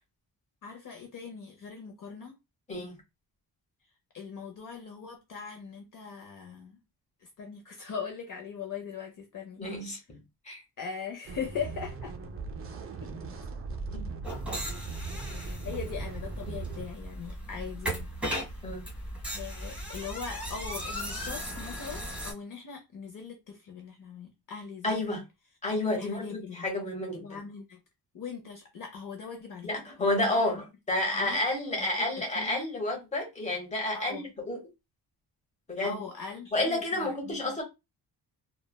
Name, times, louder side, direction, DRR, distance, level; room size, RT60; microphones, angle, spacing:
voice 1, 0.6-2.3 4.1-6.8 7.2-9.6 10.8-12.1 13.0-13.1 15.3-18.6 19.3-25.0 26.0-26.7 27.2-27.8 28.1-29.7 30.0-30.7 31.1-31.4 31.8-32.6 33.9-34.3 35.8-37.6, left 6 dB, 50° left, 0.6 m, -41 dB
voice 2, 9.6-10.2 10.4-10.6 13.9-14.1 18.6-18.8 24.8-25.2 25.6-27.4 29.6-34.6 35.7-36.0 36.5-37.6, left 1 dB, 15° left, 1.0 m, -30 dB
sound 1, 11.3-16.9, right 4 dB, 35° right, 0.4 m, -39 dB
sound 2, 14.2-22.3, equal, 5° right, 1.3 m, -37 dB
3.1 x 2.2 x 2.2 m
wide cardioid pair, 160°, 41 cm